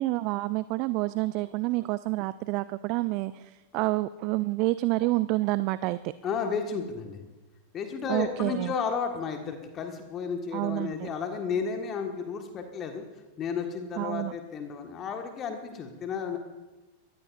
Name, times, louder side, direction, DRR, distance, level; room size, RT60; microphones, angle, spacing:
voice 1, 0.0-6.1 8.1-8.7 10.5-11.1 14.0-14.3, right 19 dB, 45° right, 16 dB, 0.4 m, -28 dB
voice 2, 6.2-7.2 7.7-13.0 13.4-16.4, left 6 dB, 30° left, 4 dB, 1.6 m, -32 dB
23.5 x 15.5 x 2.6 m, 1.2 s
figure-of-eight pair, 90°, 0 cm